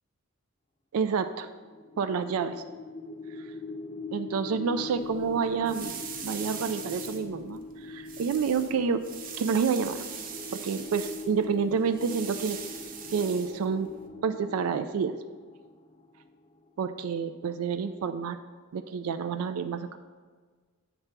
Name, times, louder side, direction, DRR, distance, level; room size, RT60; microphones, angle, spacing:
voice 1, 0.9-1.5 2.0-2.6 3.3-3.5 4.1-6.0 6.2-9.0 9.4-10.0 10.5-12.6 13.1-13.9 14.2-15.1 16.8-18.4 18.7-20.0, right 6 dB, 90° right, 10 dB, 0.3 m, -29 dB
sound 1, 1.6-16.6, left 3 dB, 25° left, 0.3 m, -42 dB
sound 2, 4.9-14.1, right 7 dB, 40° right, 0.5 m, -42 dB
8.0 x 3.3 x 5.9 m, 1.5 s
head